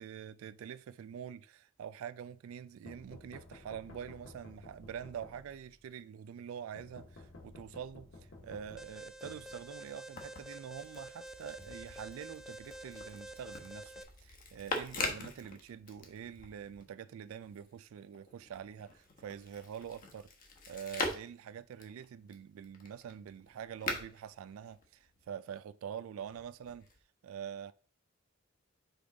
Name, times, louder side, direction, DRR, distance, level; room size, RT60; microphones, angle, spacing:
voice 1, 0.0-8.1 8.4-20.3 20.7-26.9 27.2-27.7, right 8 dB, 80° right, 0.3 m, -45 dB
sound 1, 2.9-5.8 6.7-10.1, left 2 dB, 75° left, 1.7 m, -54 dB
Alarm, 8.8-14.0, right 1 dB, ahead, 0.4 m, -49 dB
caja de gafas, 9.9-16.9 17.2-25.3 26.2-27.0, left 3 dB, 45° left, 1.2 m, -43 dB
5.2 x 5.1 x 3.9 m
head